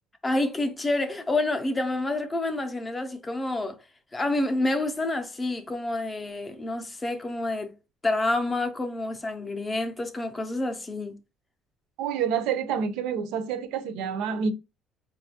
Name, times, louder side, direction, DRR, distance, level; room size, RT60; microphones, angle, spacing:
voice 1, 0.2-3.8 4.1-7.7 8.0-11.2, left 2 dB, 15° left, 0.5 m, -28 dB
voice 2, 12.0-14.5, right 7 dB, 75° right, 0.5 m, -28 dB
5.0 x 2.3 x 2.7 m
cardioid pair, 175°, 0 cm